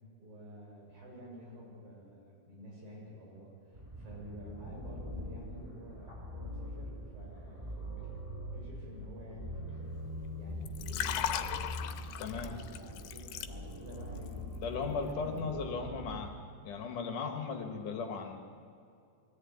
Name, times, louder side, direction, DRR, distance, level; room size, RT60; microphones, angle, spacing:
voice 1, 0.2-8.2 8.5-10.0 10.3-11.6 12.3-15.4, equal, 65° right, -3 dB, 8.3 m, -50 dB
sound 1, 3.7-16.3, equal, 10° right, 1.6 m, -43 dB
Liquid, 10.6-14.0 14.3-14.6, left 11 dB, 85° left, 2.6 m, -37 dB
voice 2, 12.2-12.6 14.6-16.4 16.6-18.4, left 5 dB, 65° left, 4 dB, 2.7 m, -37 dB
22.0 x 14.5 x 8.6 m, 2.4 s
omnidirectional pair, 4.3 m